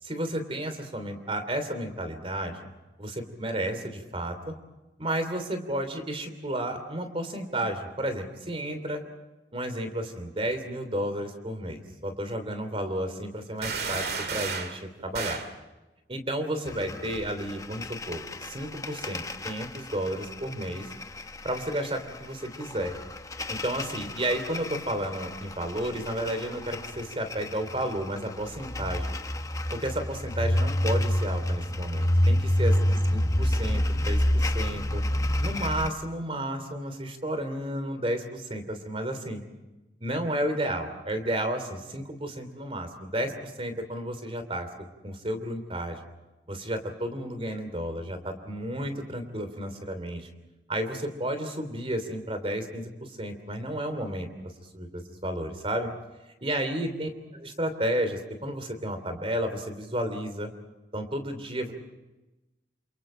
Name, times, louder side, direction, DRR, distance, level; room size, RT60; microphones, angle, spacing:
voice 1, 0.0-2.7 3.0-4.5 5.0-9.0 9.5-15.4 16.1-20.9 21.4-22.9 23.5-29.1 29.7-32.7 33.1-35.0 35.4-39.4 40.0-46.0 46.5-50.3 50.7-55.9 56.4-60.5 60.9-61.7, right 1 dB, 30° right, 8 dB, 3.2 m, -32 dB
sound 1, 13.6-14.8 15.1-15.5, right 5 dB, 60° right, 2.3 m, -32 dB
sound 2, 16.7-35.9, left 1 dB, 20° left, 0.9 m, -29 dB
29.0 x 28.0 x 4.5 m, 1.0 s
head